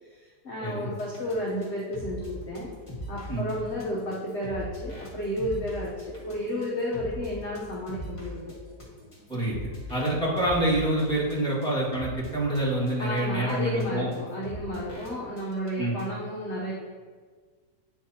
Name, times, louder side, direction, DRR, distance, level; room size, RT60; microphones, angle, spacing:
voice 1, 0.1-2.7 3.1-8.5 13.0-16.7, equal, 50° left, -4 dB, 1.0 m, -32 dB
sound 1, 1.0-12.6 12.9-13.2 13.5-13.6 13.8-13.9 14.1-14.2 14.4-15.1 15.4-15.7 16.0-16.1, equal, 20° left, 1.3 m, -41 dB
voice 2, 9.9-14.1 15.8-16.0, right 1 dB, 5° left, -7 dB, 1.6 m, -26 dB
9.0 x 4.7 x 2.8 m, 1.5 s
omnidirectional pair, 1.8 m